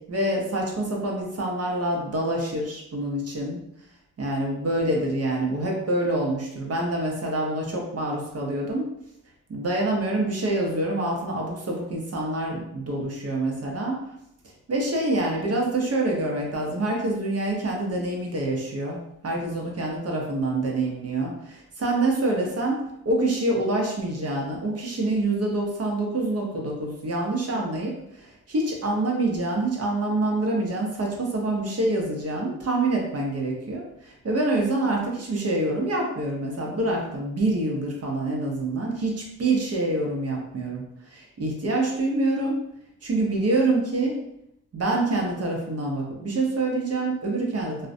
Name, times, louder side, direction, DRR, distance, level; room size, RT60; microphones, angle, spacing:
voice 1, 0.1-3.6 4.2-8.9 9.5-14.0 14.7-42.6 43.0-44.2 44.7-47.9, right 2 dB, 45° right, -1 dB, 0.8 m, -26 dB
2.3 x 2.1 x 2.5 m, 0.78 s
cardioid pair, 55°, 34 cm